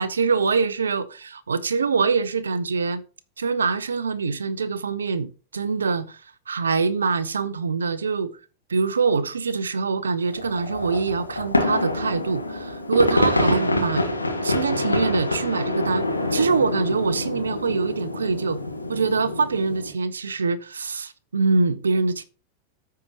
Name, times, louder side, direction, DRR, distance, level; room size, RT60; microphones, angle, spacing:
voice 1, 0.0-3.0 3.4-6.2 6.5-8.3 8.7-14.1 14.4-16.0 16.3-18.6 18.9-22.2, right 4 dB, 70° right, 0.7 m, -24 dB
sound 1, 10.3-19.9, left 1 dB, 80° left, 1.4 m, -26 dB
14.0 x 4.8 x 2.9 m
figure-of-eight pair, 90°, 0 cm